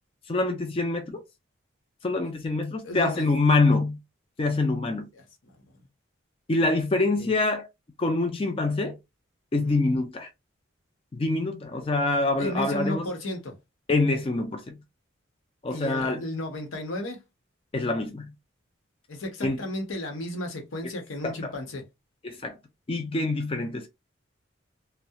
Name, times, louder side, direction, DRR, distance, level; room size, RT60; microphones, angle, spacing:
voice 1, 0.3-1.2 2.0-4.0 4.4-5.1 6.5-7.7 8.0-9.0 9.5-10.3 11.1-13.1 13.9-14.8 15.6-16.2 17.7-18.3 19.4-19.6 21.2-21.5 22.2-22.6 22.9-23.9, left 2 dB, 30° left, 0.4 m, -25 dB
voice 2, 2.8-3.3 5.2-5.9 7.2-7.3 9.6-9.8 12.4-13.6 15.7-17.2 19.1-21.8, left 1 dB, 90° left, 0.8 m, -34 dB
2.3 x 2.0 x 2.7 m
head